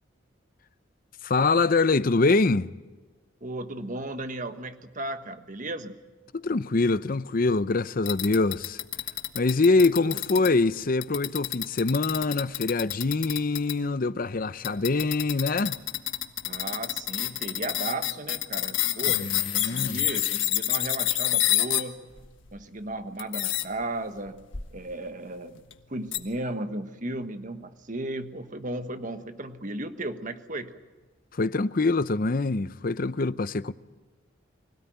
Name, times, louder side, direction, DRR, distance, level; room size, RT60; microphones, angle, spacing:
voice 1, 1.2-2.7 6.3-8.8 9.3-15.8 19.2-20.0 31.3-33.7, left 3 dB, 45° left, 0.6 m, -24 dB
voice 2, 3.4-6.0 10.0-10.2 16.4-22.2 22.5-24.4 24.7-25.6 25.9-30.9, right 2 dB, 40° right, 1.4 m, -35 dB
sound 1, 8.1-10.5 11.0-13.7 14.6-21.8 22.2-22.6 23.2-23.6 24.5-24.7 25.5-25.7 26.1-26.2, left 13 dB, 75° left, 1.4 m, -28 dB
25.0 x 17.0 x 9.3 m
head